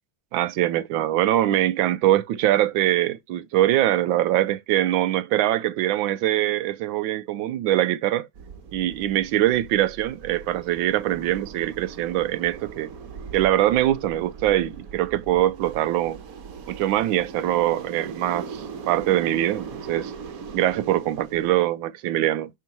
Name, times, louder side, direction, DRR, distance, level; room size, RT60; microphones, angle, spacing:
voice 1, 0.3-8.3 8.7-12.9 13.3-16.2 16.7-20.1 20.5-22.5, right 13 dB, 90° right, 1.4 m, -23 dB
sound 1, 8.3-21.6, right 5 dB, 55° right, 1.3 m, -39 dB
11.5 x 4.5 x 3.0 m
omnidirectional pair, 2.1 m